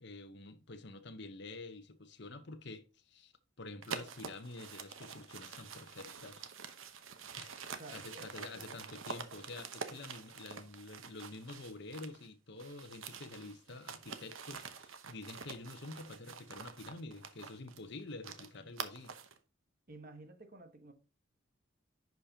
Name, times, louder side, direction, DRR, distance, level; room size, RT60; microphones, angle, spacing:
voice 1, 0.0-3.3 3.6-6.5 7.4-7.5 7.9-19.1, left 2 dB, 55° left, 0.9 m, -48 dB
sound 1, 3.8-12.3 12.6-19.4, right 6 dB, 75° right, 1.0 m, -47 dB
voice 2, 7.8-8.6 19.9-20.9, right 2 dB, 45° right, 1.3 m, -52 dB
10.5 x 5.2 x 2.8 m
head